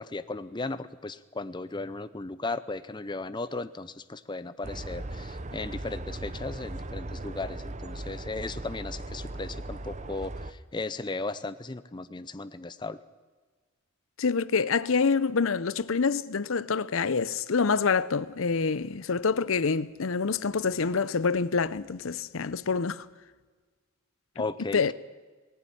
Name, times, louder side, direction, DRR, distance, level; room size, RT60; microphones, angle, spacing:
voice 1, 0.0-13.0 24.4-24.9, left 3 dB, 20° left, 0.6 m, -36 dB
sound 1, 4.6-10.5, right 2 dB, 35° right, 0.8 m, -38 dB
voice 2, 14.2-23.1 24.4-24.5 24.7-24.9, left 5 dB, 70° left, 0.7 m, -26 dB
18.5 x 15.5 x 10.0 m
head